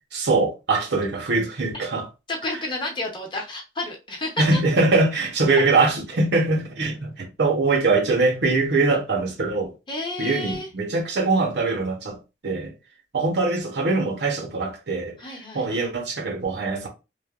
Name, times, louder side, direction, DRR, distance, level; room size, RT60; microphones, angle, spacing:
voice 1, 0.1-2.1 4.4-9.7 10.2-12.2 12.4-12.7 13.1-15.2 15.5-16.9, right 3 dB, 70° right, 0.8 m, -22 dB
voice 2, 2.3-4.6 9.9-10.7 15.2-15.7, left 2 dB, 25° left, 0.7 m, -31 dB
3.1 x 2.2 x 2.3 m
head